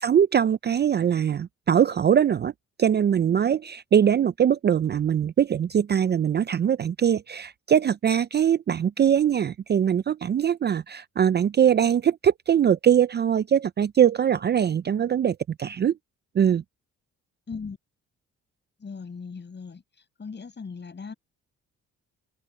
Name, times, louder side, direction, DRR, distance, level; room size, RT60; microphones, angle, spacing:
voice 1, 0.0-2.5 2.8-15.9 16.4-16.6, right 9 dB, 35° right, 0.4 m, -22 dB
voice 2, 17.5-17.8 18.8-19.8 20.2-21.1, left 5 dB, 35° left, 7.0 m, -38 dB
cardioid pair, 90°, 30 cm